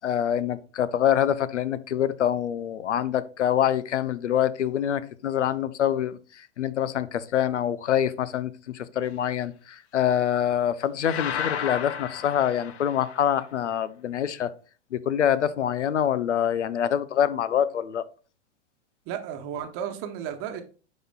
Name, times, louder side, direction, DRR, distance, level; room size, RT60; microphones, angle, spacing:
voice 1, 0.0-6.2 6.6-14.5 14.9-18.0, left 9 dB, 85° left, 0.6 m, -25 dB
sound 1, 11.0-13.3, left 8 dB, 65° left, 0.9 m, -33 dB
voice 2, 19.1-20.6, right 9 dB, 40° right, 1.0 m, -33 dB
9.9 x 4.2 x 2.3 m
hypercardioid pair, 105°, 35 cm